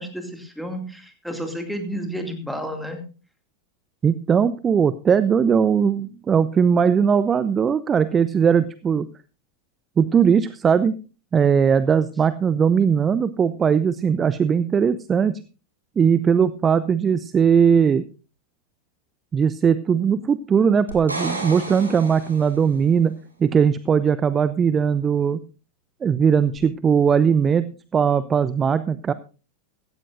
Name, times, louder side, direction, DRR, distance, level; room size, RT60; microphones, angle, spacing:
voice 1, 0.0-3.0, equal, ahead, 4 dB, 2.4 m, -31 dB
voice 2, 4.0-9.1 10.0-11.0 11.3-15.4 16.0-18.0 19.3-23.1 23.4-25.4 26.0-29.1, right 7 dB, 20° right, 15 dB, 0.5 m, -19 dB
sound 1, 20.9-22.8 26.5-26.6, right 2 dB, 85° right, 3.2 m, -32 dB
16.0 x 14.0 x 2.6 m, 0.34 s
figure-of-eight pair, 90°, 0 cm